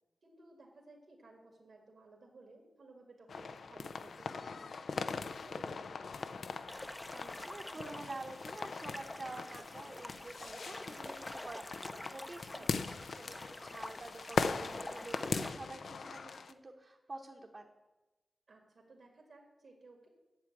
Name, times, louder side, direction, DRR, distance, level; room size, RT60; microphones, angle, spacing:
voice 1, 0.2-4.9 5.3-6.2 12.5-12.7 18.5-20.1, right 2 dB, 70° right, 1 dB, 2.1 m, -58 dB
sound 1, 3.3-16.5, left 4 dB, 75° left, 0.6 m, -40 dB
sound 2, 6.7-15.5, left 1 dB, 15° left, 0.7 m, -48 dB
voice 2, 7.1-17.7, right 2 dB, 40° right, 0 dB, 1.1 m, -48 dB
8.2 x 7.3 x 8.7 m, 1.1 s
cardioid pair, 70°, 0 cm